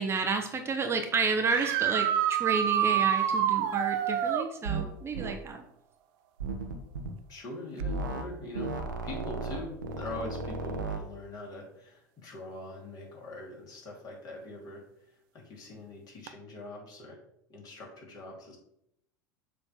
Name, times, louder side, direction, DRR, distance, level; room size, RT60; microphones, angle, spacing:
voice 1, 0.0-5.6, right 4 dB, 25° right, 5 dB, 0.8 m, -30 dB
sound 1, 1.5-4.5 7.8-7.9 9.9-10.0 16.3-16.4, right 10 dB, 50° right, 0.5 m, -27 dB
sound 2, 4.6-4.9 5.1-5.4 6.4-7.1 7.8-8.3 8.5-11.0, right 3 dB, 80° right, 0.8 m, -34 dB
voice 2, 7.3-8.8 9.0-17.2 17.5-18.6, left 2 dB, 40° left, -2 dB, 2.7 m, -43 dB
7.0 x 3.2 x 6.0 m, 0.76 s
figure-of-eight pair, 75°, 10 cm